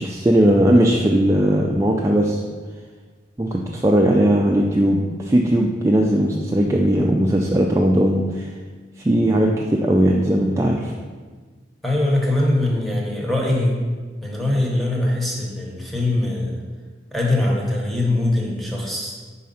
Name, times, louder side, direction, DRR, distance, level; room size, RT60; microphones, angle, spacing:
voice 1, 0.0-2.4 3.4-8.5 9.0-10.9, right 1 dB, 15° right, -1 dB, 0.4 m, -18 dB
voice 2, 11.8-13.7 14.2-16.6 17.1-19.1, left 1 dB, ahead, -3 dB, 1.0 m, -22 dB
4.7 x 4.2 x 5.5 m, 1.4 s
head